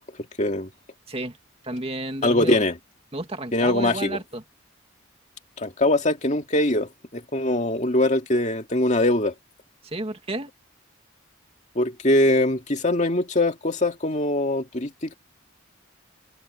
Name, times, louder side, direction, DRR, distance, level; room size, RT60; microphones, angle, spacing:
voice 1, 0.4-0.7 2.2-2.7 3.5-4.2 5.6-9.3 11.8-15.2, left 1 dB, 35° left, 2.2 m, -22 dB
voice 2, 1.6-2.6 3.1-4.4 9.8-10.5, right 2 dB, 30° right, 2.3 m, -31 dB
head